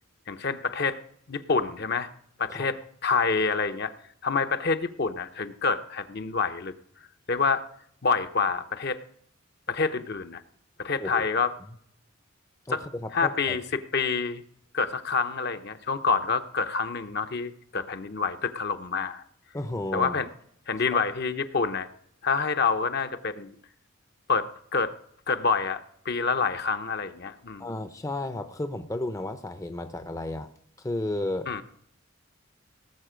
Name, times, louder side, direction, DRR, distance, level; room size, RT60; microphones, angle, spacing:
voice 1, 0.3-1.0 1.3-2.1 2.4-3.9 4.2-6.7 7.3-7.6 8.0-9.0 9.7-10.4 10.8-11.5 12.7-12.8 13.1-14.4 14.7-19.2 19.9-20.3 20.7-21.9 22.2-23.5 24.3-24.9 25.3-27.7 31.5-31.6, left 5 dB, 50° left, 9 dB, 0.7 m, -27 dB
voice 2, 12.7-13.6 19.5-20.2 20.9-21.0 27.6-30.5 30.8-31.5, left 1 dB, 15° left, 9 dB, 0.6 m, -33 dB
18.5 x 7.3 x 5.0 m, 0.68 s
head